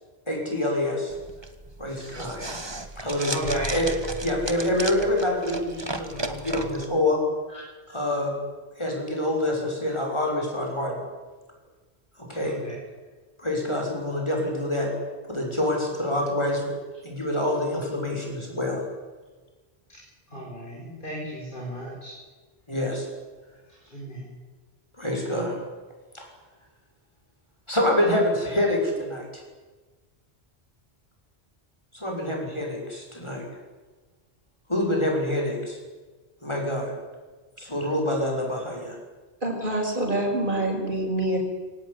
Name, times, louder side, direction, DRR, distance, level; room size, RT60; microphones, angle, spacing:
voice 1, 0.3-1.1 1.8-2.4 3.0-3.4 3.7-3.9 4.2-7.2 7.9-8.3 8.8-11.0 12.2-12.6 13.4-14.9 15.3-16.7 17.0-18.8 22.7-23.1 25.0-25.6 26.1-26.3 27.7-29.4 31.9-33.5 34.7-35.8 36.4-36.9 37.6-39.0, left 1 dB, 25° left, 0 dB, 6.6 m, -26 dB
sound 1, 1.1-6.9, right 2 dB, 25° right, 1.6 m, -35 dB
voice 2, 2.2-2.5 3.3-3.7 7.5-7.6 12.4-12.8 20.3-22.1 23.9-24.3, right 1 dB, 50° left, -3 dB, 5.7 m, -34 dB
voice 3, 39.4-41.4, right 1 dB, 50° right, 0 dB, 6.1 m, -26 dB
23.5 x 17.5 x 9.9 m, 1.3 s
omnidirectional pair, 1.1 m